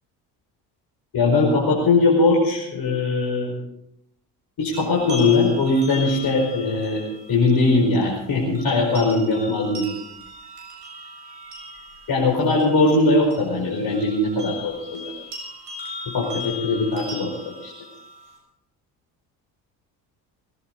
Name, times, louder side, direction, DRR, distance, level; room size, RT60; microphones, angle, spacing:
voice 1, 1.1-3.5 4.6-7.0 7.3-9.9 12.1-15.0 16.1-17.3 17.6-17.7, left 3 dB, 50° left, -2 dB, 5.0 m, -20 dB
sound 1, 4.7-18.4, left 2 dB, 55° right, 6.8 m, -38 dB
19.0 x 17.5 x 4.0 m, 0.77 s
hypercardioid pair, 50°, 49 cm